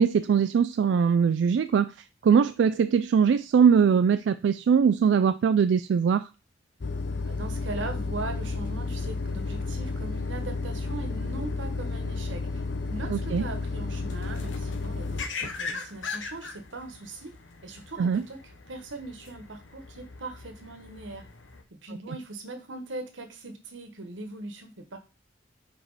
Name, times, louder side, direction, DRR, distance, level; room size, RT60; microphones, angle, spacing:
voice 1, 0.0-1.9 2.2-6.3 13.1-13.4 18.0-18.2, right 6 dB, 70° right, 0.3 m, -21 dB
sound 1, 6.8-15.2, left 3 dB, 60° left, 0.7 m, -32 dB
voice 2, 7.1-12.6 12.9-17.3 17.6-21.2 21.7-25.0, right 2 dB, 90° right, 1.3 m, -40 dB
sound 2, 8.8-21.6, left 4 dB, 90° left, 1.0 m, -43 dB
5.0 x 4.7 x 4.0 m
head